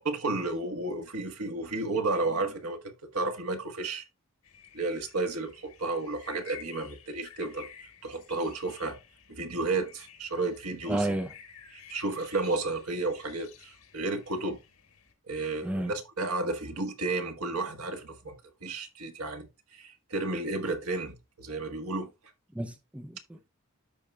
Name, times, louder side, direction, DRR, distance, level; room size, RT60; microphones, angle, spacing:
voice 1, 0.0-2.8 3.1-4.0 4.7-7.7 8.0-9.0 9.3-11.1 11.7-14.6 15.3-18.3 18.6-19.4 19.7-22.1, right 3 dB, 80° right, 1.5 m, -32 dB
sound 1, 4.4-15.1, left 8 dB, 75° left, 1.5 m, -53 dB
voice 2, 10.9-11.3 15.6-15.9 22.5-23.5, right 1 dB, 5° right, 0.5 m, -32 dB
13.0 x 4.7 x 2.3 m
head